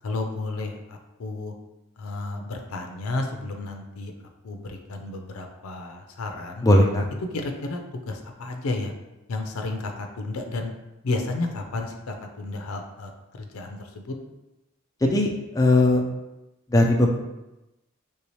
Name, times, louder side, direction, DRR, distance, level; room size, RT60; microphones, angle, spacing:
voice 1, 0.0-1.5 2.0-4.1 4.4-6.7 7.3-7.8 8.1-8.9 9.3-10.7 11.0-13.1 13.4-14.1, left 2 dB, 80° left, 4 dB, 0.5 m, -32 dB
voice 2, 6.6-7.1 15.0-16.0 16.7-17.1, left 1 dB, 15° left, 1 dB, 0.3 m, -19 dB
3.2 x 2.7 x 3.1 m, 0.97 s
head